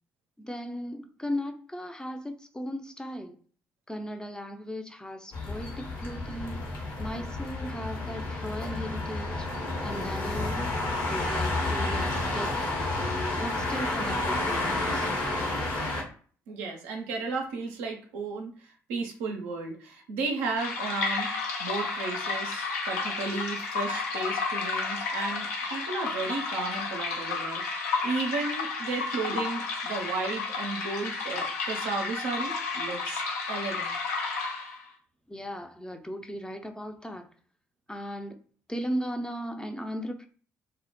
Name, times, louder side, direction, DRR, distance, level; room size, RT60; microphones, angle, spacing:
voice 1, 0.4-3.4 3.9-6.6 7.0-12.9 13.4-15.1 29.3-29.4 35.3-37.3 37.9-38.3 38.7-40.3, equal, 10° left, 5 dB, 0.4 m, -37 dB
sound 1, 5.3-16.0, left 2 dB, 60° left, 0.9 m, -30 dB
voice 2, 16.5-21.3 21.6-33.2 33.5-34.0, right 3 dB, 75° right, 2 dB, 0.4 m, -34 dB
sound 2, 20.6-34.9, left 4 dB, 80° left, 0.4 m, -32 dB
2.0 x 2.0 x 2.9 m, 0.43 s
hypercardioid pair, 45°, 8 cm